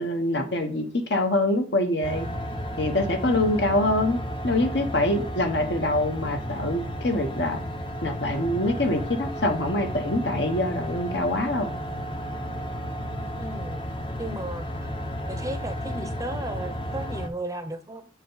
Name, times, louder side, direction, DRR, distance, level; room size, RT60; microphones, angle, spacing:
voice 1, 0.0-2.3 2.8-4.2 4.4-7.6 8.0-11.7, left 1 dB, 65° left, 6 dB, 1.1 m, -25 dB
sound 1, 2.0-17.3, equal, 25° left, 0.6 m, -33 dB
voice 2, 13.4-13.8 14.2-14.9 15.3-18.1, right 1 dB, 15° right, 8 dB, 0.6 m, -35 dB
6.8 x 4.6 x 4.0 m, 0.38 s
head